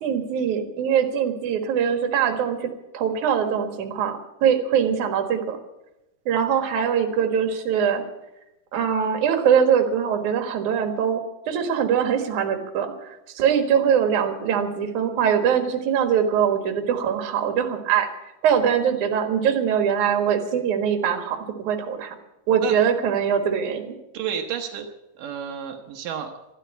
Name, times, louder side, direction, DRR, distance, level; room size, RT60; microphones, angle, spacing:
voice 1, 0.0-5.6 6.3-8.0 8.7-11.2 11.5-12.9 13.4-18.1 18.4-22.2 22.5-24.0, right 8 dB, 70° right, 6 dB, 3.0 m, -22 dB
voice 2, 24.1-24.9 25.2-26.3, right 8 dB, 85° right, 2 dB, 2.7 m, -30 dB
12.5 x 12.5 x 8.2 m, 0.94 s
omnidirectional pair, 3.7 m